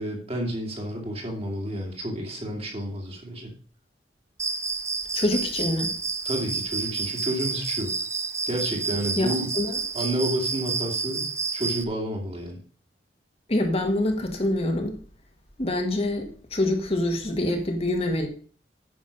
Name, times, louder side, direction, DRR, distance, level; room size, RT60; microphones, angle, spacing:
voice 1, 0.0-3.5 6.2-7.9 8.5-9.5 9.9-12.6, equal, 35° right, 2.4 m, -30 dB
Cricket, 4.4-11.8, right 4 dB, 15° right, 0.6 m, -30 dB
voice 2, 5.1-5.9 9.2-9.3 9.5-9.8 13.5-15.0 15.6-18.3, left 1 dB, 35° left, 1.5 m, -25 dB
9.5 x 6.3 x 5.3 m
head